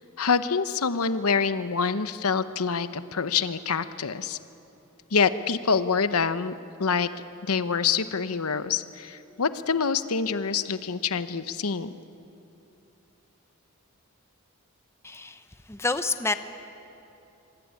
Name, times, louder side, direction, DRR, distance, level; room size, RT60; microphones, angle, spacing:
voice 1, 0.2-4.4 5.1-6.5 6.8-7.1 7.4-11.9, left 5 dB, 70° left, 12 dB, 0.9 m, -26 dB
voice 2, 15.0-15.4 15.7-16.3, left 3 dB, 10° left, 10 dB, 0.8 m, -28 dB
25.5 x 24.0 x 9.7 m, 2.9 s
head